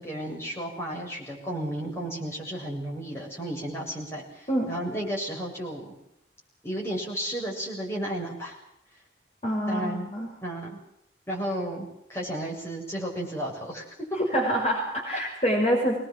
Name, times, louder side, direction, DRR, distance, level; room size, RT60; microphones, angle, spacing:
voice 1, 0.0-5.9 6.6-8.6 9.7-10.1 10.4-10.8 11.3-13.9, right 1 dB, 15° left, -2 dB, 6.9 m, -33 dB
voice 2, 9.4-10.3 14.3-16.0, equal, 35° left, 0 dB, 5.6 m, -26 dB
25.5 x 20.5 x 7.6 m, 0.80 s
head